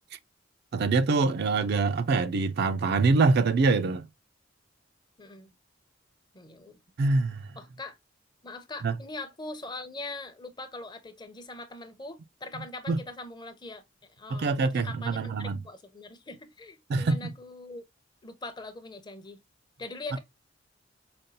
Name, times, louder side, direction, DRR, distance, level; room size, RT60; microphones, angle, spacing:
voice 1, 0.7-4.0 7.0-7.4 8.8-9.0 12.6-13.0 14.3-15.6 16.9-17.3, right 3 dB, 55° right, 0.4 m, -25 dB
voice 2, 5.2-5.5 6.3-6.8 7.6-8.0 8.4-13.8 14.2-17.8 18.2-19.4 19.8-20.2, left 2 dB, 25° left, 0.6 m, -42 dB
5.1 x 2.3 x 2.6 m
head